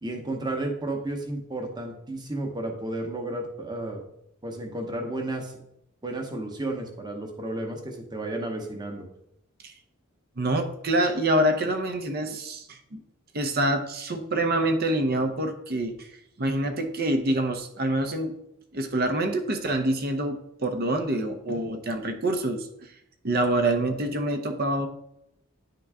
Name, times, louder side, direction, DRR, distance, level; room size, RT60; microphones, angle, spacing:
voice 1, 0.0-4.0 4.4-5.5 6.0-9.0, right 1 dB, 20° right, 2 dB, 1.0 m, -32 dB
voice 2, 10.4-13.0 13.3-16.1 16.4-18.3 18.7-22.7 23.2-24.9, right 1 dB, 45° right, 7 dB, 0.7 m, -26 dB
9.7 x 3.8 x 3.5 m, 0.77 s
head